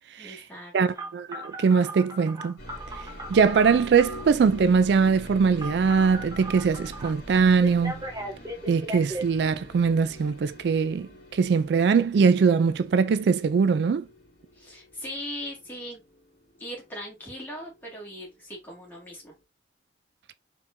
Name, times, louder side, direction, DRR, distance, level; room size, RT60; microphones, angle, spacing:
voice 1, 0.2-1.1 14.5-16.0 16.6-19.3, equal, 10° left, 1.9 m, -39 dB
voice 2, 0.7-2.6 3.3-8.0 8.7-14.0, right 5 dB, 75° right, 0.3 m, -22 dB
Telephone, 1.0-4.3 5.6-7.1 7.6-9.2, right 1 dB, 20° right, 0.9 m, -37 dB
sound 1, 2.6-18.4 18.6-19.4, equal, 75° left, 2.2 m, -45 dB
4.4 x 3.6 x 2.6 m
head